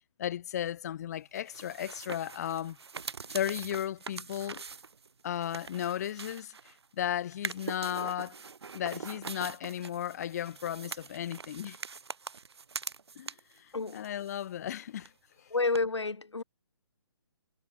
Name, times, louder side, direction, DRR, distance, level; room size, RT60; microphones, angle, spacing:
voice 1, 0.2-2.8 3.3-4.6 5.2-6.5 7.0-8.4 8.7-11.8 13.2-13.3 13.9-15.1, left 11 dB, 35° left, 0.6 m, -35 dB
sound 1, 1.4-6.9 7.3-13.6 13.9-14.7 15.0-15.1 15.8-15.9, right 5 dB, 65° right, 2.1 m, -43 dB
voice 2, 13.7-14.1 15.5-16.4, left 3 dB, 80° left, 5.9 m, -30 dB
figure-of-eight pair, 140°, 14 cm